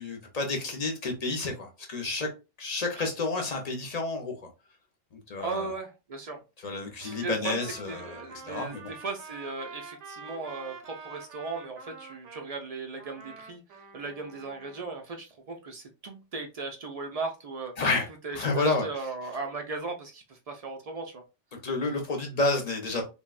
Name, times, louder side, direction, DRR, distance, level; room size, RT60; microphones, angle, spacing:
voice 1, 0.0-2.3 2.6-4.3 5.3-5.7 6.6-8.9 17.8-18.1 18.3-19.1 21.6-23.1, left 2 dB, 45° left, 0.5 m, -30 dB
voice 2, 5.4-6.4 7.0-7.6 7.9-13.6 13.9-17.7 18.2-21.2, right 3 dB, 70° right, 0.3 m, -37 dB
Trumpet, 7.0-12.5 13.0-14.9, right 4 dB, 85° right, 1.0 m, -47 dB
3.3 x 2.1 x 2.3 m
omnidirectional pair, 1.2 m